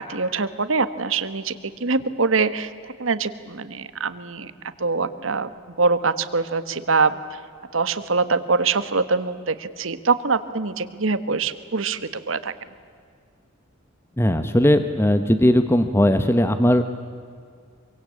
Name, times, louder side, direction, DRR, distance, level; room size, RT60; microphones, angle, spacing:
voice 1, 0.0-2.7 3.0-4.5 4.8-5.5 5.8-7.2 7.7-12.5, right 4 dB, 65° right, 13 dB, 1.3 m, -23 dB
voice 2, 14.2-16.8, left 1 dB, 10° left, 9 dB, 0.9 m, -18 dB
26.0 x 24.0 x 8.5 m, 2.2 s
head